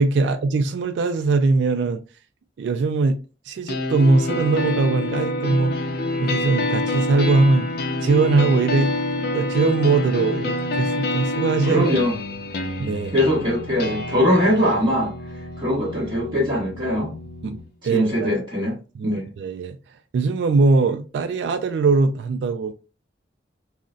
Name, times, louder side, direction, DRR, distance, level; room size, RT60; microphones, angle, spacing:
voice 1, 0.0-2.0 2.6-5.8 6.2-7.7 8.0-8.9 9.3-11.9 12.8-13.1 17.4-17.6 17.8-18.3 19.0-19.8 20.1-22.7, right 3 dB, 70° right, 0.3 m, -21 dB
sound 1, 3.7-17.7, left 2 dB, 60° left, 0.5 m, -27 dB
voice 2, 11.7-12.2 13.1-15.1 15.6-17.5 17.9-18.8 19.0-19.3, equal, 30° right, 0.9 m, -21 dB
3.8 x 2.1 x 2.4 m
head